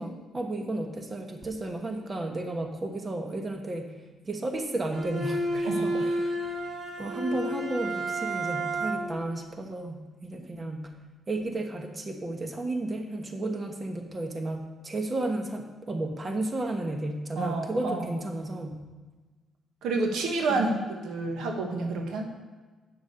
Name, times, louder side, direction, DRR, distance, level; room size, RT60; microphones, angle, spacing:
voice 1, 0.0-3.9 4.2-6.6 7.0-10.9 11.3-18.7 20.5-20.7, right 2 dB, 30° right, 4 dB, 1.2 m, -33 dB
Bowed string instrument, 4.9-9.3, right 1 dB, 55° right, 1.5 m, -31 dB
voice 2, 5.6-6.0 17.4-18.1 19.8-22.2, right 3 dB, 80° right, 3 dB, 1.3 m, -29 dB
9.0 x 6.4 x 5.4 m, 1.3 s
cardioid pair, 90°, 0 cm